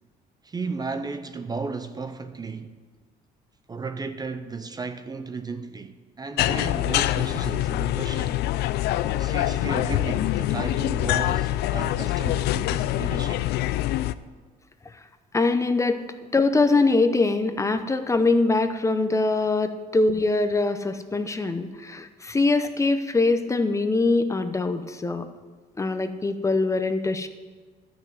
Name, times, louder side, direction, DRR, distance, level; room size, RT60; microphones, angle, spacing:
voice 1, 0.4-2.8 3.7-8.4 9.1-13.5, right 4 dB, 25° right, 0.6 m, -34 dB
sound 1, 6.4-14.1, left 14 dB, 80° left, 0.4 m, -25 dB
voice 2, 15.3-16.0 16.3-25.3 25.8-27.3, left 3 dB, 20° left, 0.7 m, -23 dB
12.0 x 6.2 x 7.6 m
cardioid pair, 110°, 17 cm